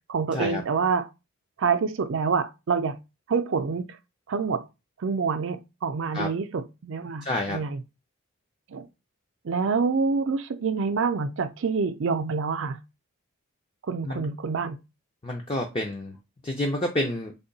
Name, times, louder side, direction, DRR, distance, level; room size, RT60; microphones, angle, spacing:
voice 1, 0.1-1.1 1.6-3.0 3.3-3.9 4.3-4.6 5.0-7.8 8.7-8.9 9.4-12.8 13.9-14.8, right 5 dB, 60° right, 0.4 m, -26 dB
voice 2, 7.2-7.6 14.0-14.3 15.2-16.1 16.4-17.3, left 1 dB, 25° left, 0.5 m, -29 dB
3.6 x 2.2 x 3.9 m
head